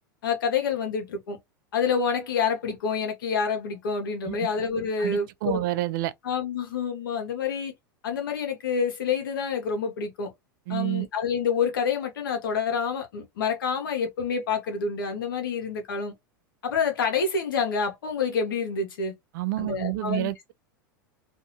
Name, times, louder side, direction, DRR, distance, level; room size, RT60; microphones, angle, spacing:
voice 1, 0.2-1.4 1.7-5.6 6.2-7.7 8.0-10.3 10.7-16.1 16.6-19.1 19.6-20.3, left 5 dB, 85° left, 1.1 m, -27 dB
voice 2, 5.0-6.1 10.7-11.1 19.3-20.5, right 17 dB, 70° right, 0.4 m, -29 dB
2.7 x 2.6 x 2.7 m
hypercardioid pair, 105°, 11 cm